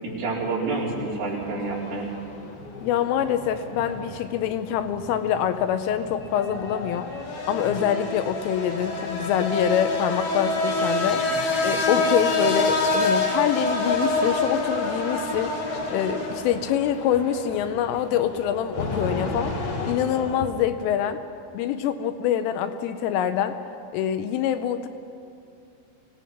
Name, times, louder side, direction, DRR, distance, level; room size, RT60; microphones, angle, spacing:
voice 1, 0.0-2.1 11.3-11.4, right 3 dB, 50° right, -7 dB, 6.2 m, -28 dB
sound 1, 0.7-20.5, left 2 dB, 60° left, 2.2 m, -28 dB
voice 2, 2.8-7.1 7.5-11.2 11.6-15.6 15.9-19.5 19.9-21.2 21.5-23.6 23.9-24.9, left 9 dB, 85° left, 9 dB, 3.2 m, -25 dB
25.0 x 18.0 x 5.9 m, 2.5 s
omnidirectional pair, 5.8 m